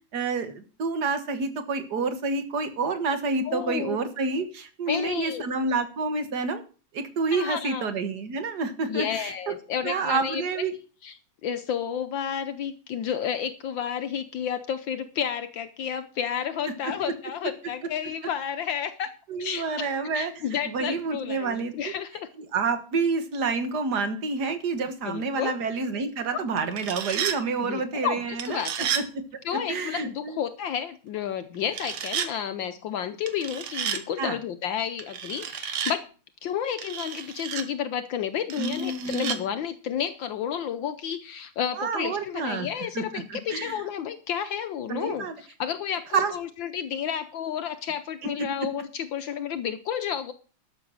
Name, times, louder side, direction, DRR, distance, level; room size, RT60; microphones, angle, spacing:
voice 1, 0.1-6.6 6.9-9.5 9.8-10.7 19.3-20.3 20.7-21.9 22.5-28.6 28.9-29.4 29.7-30.4 34.2-34.4 38.6-39.4 41.7-42.7 43.0-43.8 44.9-45.3 46.1-46.3 48.4-48.5, right 4 dB, 50° right, 9 dB, 1.9 m, -28 dB
voice 2, 3.5-4.0 4.9-5.5 7.3-7.9 8.9-10.4 11.0-11.1 11.4-19.1 19.4-19.9 20.1-22.3 25.0-25.6 26.3-26.4 27.6-28.9 29.4-36.1 36.4-45.3 45.6-50.3, left 8 dB, 70° left, 10 dB, 1.4 m, -31 dB
sound 1, 26.6-27.4 28.4-29.1 31.7-32.3 33.3-34.0 35.0-36.0 36.8-37.7 38.5-39.4, right 8 dB, 85° right, 2.0 m, -31 dB
12.5 x 6.9 x 6.4 m, 0.37 s
omnidirectional pair, 2.3 m